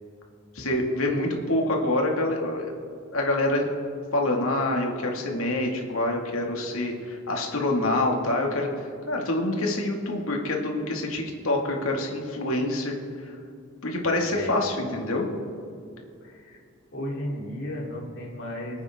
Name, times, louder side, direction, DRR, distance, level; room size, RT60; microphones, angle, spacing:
voice 1, 0.5-2.7 3.1-3.7 4.1-8.7 9.1-12.9 13.2-13.3 13.8-15.2, left 1 dB, 80° left, 0 dB, 2.3 m, -26 dB
voice 2, 16.2-16.6 16.9-18.8, left 1 dB, 60° left, -3 dB, 3.3 m, -34 dB
26.0 x 9.0 x 3.7 m, 2.4 s
head